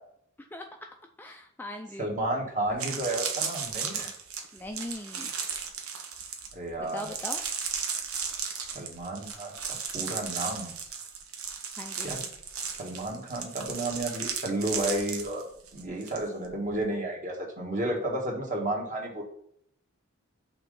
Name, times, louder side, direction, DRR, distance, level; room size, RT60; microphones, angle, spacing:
voice 1, 1.2-2.1 4.5-5.3 6.8-7.4 11.8-12.1, left 1 dB, 10° left, 3 dB, 0.4 m, -39 dB
voice 2, 2.0-4.1 6.5-7.1 8.7-10.7 12.0-12.2 12.8-15.4 15.7-19.2, right 1 dB, 35° right, 0 dB, 1.6 m, -32 dB
sound 1, 2.2-2.3 2.7-16.2 16.4-16.8, right 6 dB, 90° right, 1.1 m, -35 dB
5.9 x 3.7 x 5.3 m, 0.69 s
head